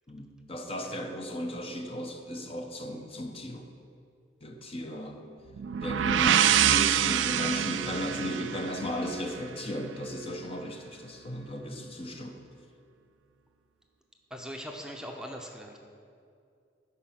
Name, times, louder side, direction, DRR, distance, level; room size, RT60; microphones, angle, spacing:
voice 1, 0.1-3.7 4.4-5.2 5.8-12.4, left 1 dB, 30° left, 4 dB, 0.8 m, -36 dB
sound 1, 5.6-9.4, right 10 dB, 85° right, 0.4 m, -26 dB
voice 2, 14.3-15.8, equal, 5° right, 1 dB, 0.7 m, -41 dB
13.5 x 5.2 x 5.8 m, 2.4 s
head